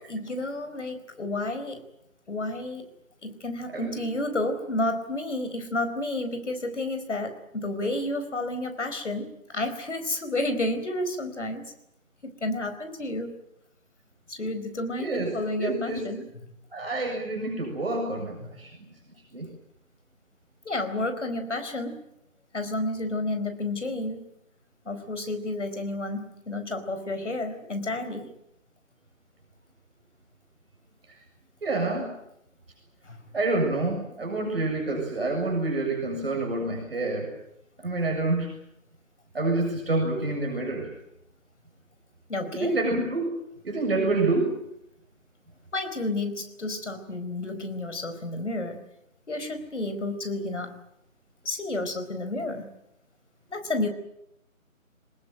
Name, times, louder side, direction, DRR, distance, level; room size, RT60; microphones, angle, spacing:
voice 1, 0.0-1.8 2.3-2.9 3.2-11.6 12.2-13.4 14.3-16.3 18.5-18.6 20.6-22.0 22.5-24.2 24.8-28.3 33.0-33.2 42.3-42.7 45.7-48.8 49.3-50.8 51.4-52.7 53.5-53.9, left 2 dB, 55° left, 8 dB, 4.6 m, -31 dB
voice 2, 15.0-16.0 16.7-18.9 19.3-19.5 31.6-32.1 33.3-37.3 37.8-38.5 39.3-40.9 42.5-43.2 43.6-44.5, right 2 dB, 45° right, 0 dB, 7.1 m, -27 dB
24.0 x 20.0 x 9.3 m, 0.82 s
figure-of-eight pair, 170°, 41 cm